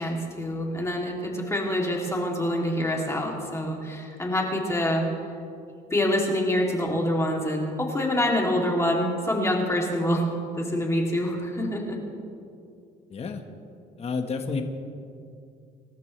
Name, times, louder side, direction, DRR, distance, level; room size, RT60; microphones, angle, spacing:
voice 1, 0.0-5.1 5.9-10.3 10.6-12.0, left 1 dB, 15° left, -1 dB, 3.0 m, -26 dB
voice 2, 13.1-13.4 14.0-14.6, left 4 dB, 35° left, 5 dB, 1.5 m, -30 dB
26.5 x 13.5 x 3.4 m, 2.4 s
cardioid pair, 110°, 17 cm